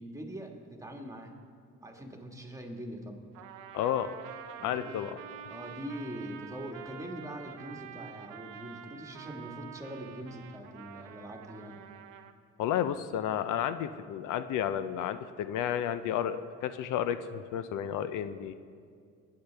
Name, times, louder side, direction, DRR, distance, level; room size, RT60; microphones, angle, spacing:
voice 1, 0.0-1.3 1.8-3.2 4.6-5.0 5.5-11.8, equal, 10° right, 2 dB, 1.6 m, -42 dB
Trumpet, 3.3-12.3, right 8 dB, 90° right, 0.7 m, -47 dB
voice 2, 3.7-4.2 4.6-5.1 12.6-18.5, left 10 dB, 80° left, 11 dB, 0.6 m, -32 dB
21.0 x 8.6 x 3.4 m, 2.2 s
cardioid pair, 90°, 31 cm